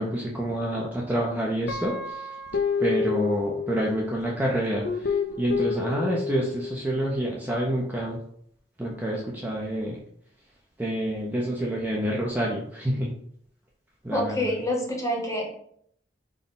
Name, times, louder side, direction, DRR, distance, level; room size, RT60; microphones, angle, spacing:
voice 1, 0.0-2.3 2.8-8.2 8.8-10.0 10.8-13.1 14.0-14.3, right 1 dB, 10° right, -3 dB, 0.4 m, -28 dB
Guitar, 1.7-4.1 4.8-6.8, left 5 dB, 65° left, 0.3 m, -29 dB
voice 2, 14.1-15.5, left 1 dB, 15° left, 0 dB, 0.8 m, -27 dB
3.6 x 2.1 x 3.9 m, 0.67 s
head